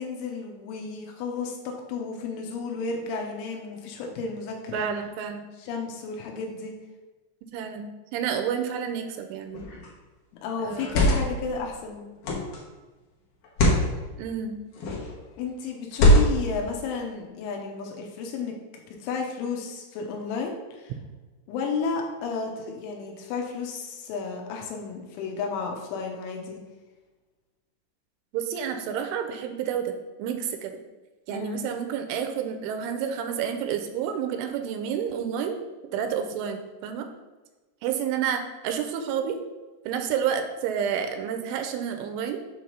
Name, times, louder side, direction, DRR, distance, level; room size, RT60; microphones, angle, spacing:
voice 1, 0.0-4.9 5.6-6.7 10.4-12.1 15.4-18.6 19.0-20.9 21.5-26.6 31.3-31.6, left 5 dB, 90° left, 1 dB, 3.3 m, -32 dB
voice 2, 4.7-5.5 7.5-9.6 10.6-11.1 14.2-14.6 28.3-29.9 30.2-30.8 31.3-35.6 35.9-37.1 37.8-39.4 39.9-42.4, right 8 dB, 85° right, 6 dB, 2.9 m, -30 dB
sound 1, 9.5-9.9 10.7-11.4 12.2-12.6 13.4-13.9 14.8-15.1 15.9-16.5, left 1 dB, 70° left, 2.1 m, -21 dB
8.0 x 3.1 x 5.5 m, 1.2 s
omnidirectional pair, 5.6 m